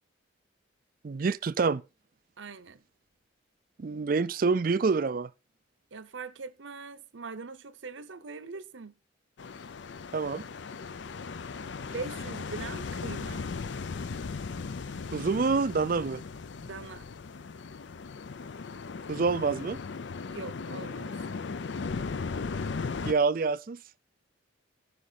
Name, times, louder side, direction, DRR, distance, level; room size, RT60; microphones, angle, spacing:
voice 1, 1.0-1.8 3.8-5.3 10.1-10.4 15.1-16.2 19.1-19.8 23.0-23.8, right 4 dB, 45° right, 0.4 m, -27 dB
voice 2, 2.4-2.8 5.9-9.0 11.8-13.5 16.6-17.1 20.3-21.2, right 4 dB, 75° right, 0.8 m, -41 dB
sound 1, 9.4-23.1, left 4 dB, 65° left, 0.5 m, -37 dB
15.0 x 5.2 x 4.0 m
head